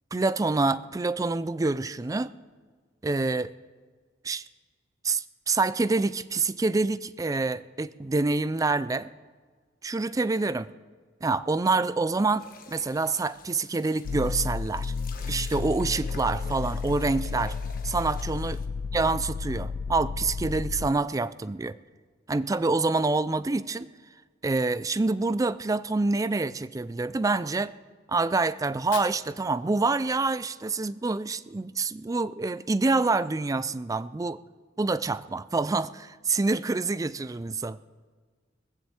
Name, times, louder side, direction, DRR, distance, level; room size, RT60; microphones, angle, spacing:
voice 1, 0.1-2.3 3.0-3.5 4.2-4.4 5.0-9.1 9.8-10.7 11.2-14.9 15.3-17.6 17.8-18.6 18.9-21.8 22.3-23.9 24.4-27.7 28.1-34.4 34.8-37.8, right 3 dB, 20° right, 16 dB, 0.4 m, -27 dB
sound 1, 12.4-18.6, left 3 dB, 50° left, 1.2 m, -48 dB
sound 2, 14.0-20.9, left 4 dB, 75° left, 0.4 m, -32 dB
Fire, 28.6-30.6, left 7 dB, 90° left, 1.5 m, -46 dB
19.5 x 7.1 x 7.8 m, 1.5 s
head